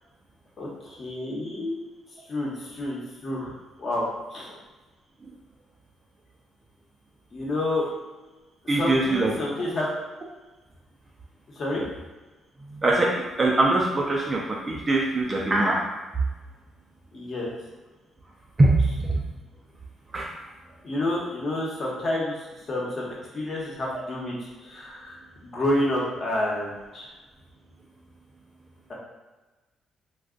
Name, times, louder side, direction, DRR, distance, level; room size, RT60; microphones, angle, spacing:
voice 1, 0.6-1.8 2.3-4.1 4.3-4.6 7.3-7.8 8.6-9.9 11.6-11.8 17.1-17.5 20.8-22.4 22.7-23.1 23.3-24.3 24.6-27.1, left 1 dB, 45° left, -4 dB, 0.9 m, -29 dB
voice 2, 8.7-9.3 12.8-13.1 13.4-15.8 18.6-19.2 20.1-20.3, right 2 dB, 30° right, -2 dB, 0.4 m, -22 dB
2.3 x 2.3 x 3.7 m, 1.2 s
cardioid pair, 90°, 0 cm